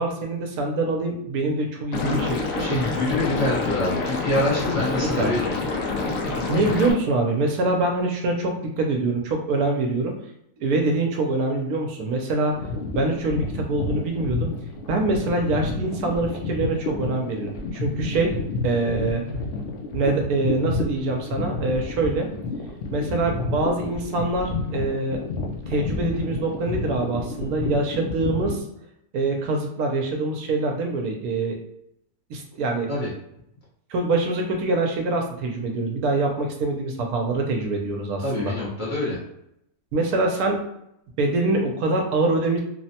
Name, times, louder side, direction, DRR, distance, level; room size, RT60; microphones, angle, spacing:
voice 1, 0.0-2.7 5.0-5.4 6.5-10.1 10.6-12.6 12.9-14.5 14.9-18.4 18.6-19.2 19.9-22.3 22.9-25.2 25.7-28.6 29.1-31.6 32.3-32.9 33.9-38.5 39.9-40.6 41.2-42.6, right 2 dB, 80° right, 2 dB, 1.0 m, -24 dB
Liquid, 1.9-6.9, left 3 dB, 70° left, 0.9 m, -27 dB
voice 2, 2.0-2.3 2.6-5.5 6.5-6.6 32.9-33.1 38.2-39.2, left 1 dB, 35° left, -8 dB, 1.0 m, -26 dB
sound 1, 12.5-28.6, left 3 dB, 90° left, 0.5 m, -30 dB
3.1 x 2.1 x 2.7 m, 0.78 s
omnidirectional pair, 1.6 m